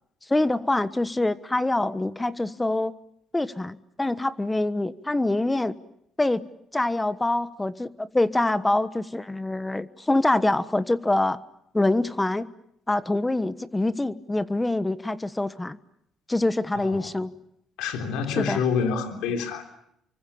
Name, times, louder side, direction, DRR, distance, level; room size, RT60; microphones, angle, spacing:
voice 1, 0.3-2.9 3.3-5.8 6.2-6.5 6.7-11.4 11.7-12.5 12.9-15.8 16.3-17.3 18.3-18.7, left 2 dB, 15° left, 14 dB, 1.2 m, -25 dB
voice 2, 17.8-19.6, left 6 dB, 85° left, 5 dB, 3.5 m, -27 dB
29.0 x 24.5 x 7.1 m, 0.77 s
supercardioid pair, 80°, 0 cm